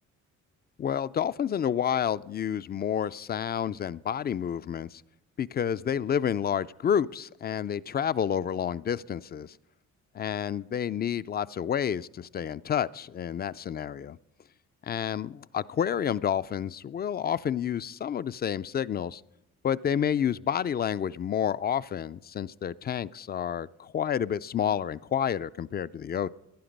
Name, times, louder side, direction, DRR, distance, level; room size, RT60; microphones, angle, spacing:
voice 1, 0.8-5.0 5.4-9.6 10.1-14.2 14.8-19.2 19.6-26.3, left 8 dB, 35° left, 0.4 m, -29 dB
16.0 x 11.0 x 5.3 m
cardioid pair, 90°, 30 cm